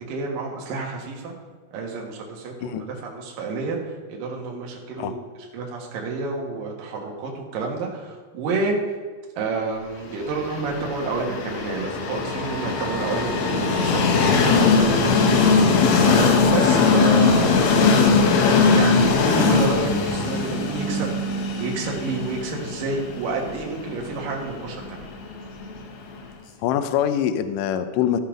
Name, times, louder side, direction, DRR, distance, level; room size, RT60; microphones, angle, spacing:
voice 1, 0.1-1.3 1.7-5.2 5.5-8.8 9.4-15.5 16.0-18.1 18.7-21.1 21.6-25.0, right 4 dB, 65° right, -1 dB, 3.1 m, -29 dB
Train, 10.3-26.1, left 4 dB, 70° left, 1.8 m, -20 dB
voice 2, 26.6-28.2, left 10 dB, 85° left, 10 dB, 1.9 m, -23 dB
15.0 x 5.6 x 5.1 m, 1.5 s
omnidirectional pair, 4.5 m